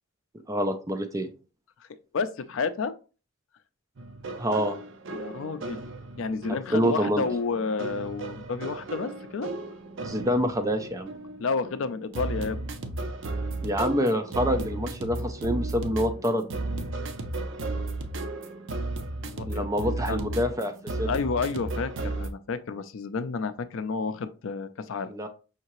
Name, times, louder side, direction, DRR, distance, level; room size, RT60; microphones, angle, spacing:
voice 1, 0.5-1.3 4.4-4.8 6.5-7.3 10.0-11.1 13.6-16.4 19.5-20.7 21.0-21.1 25.1-25.3, equal, 15° right, 0.4 m, -26 dB
voice 2, 2.1-2.9 5.1-5.8 6.2-9.5 11.4-12.6 19.2-20.2 21.1-25.1, left 4 dB, 65° left, 0.4 m, -31 dB
sound 1, 4.0-22.3, right 2 dB, 60° right, 0.6 m, -35 dB
5.7 x 2.8 x 3.0 m
head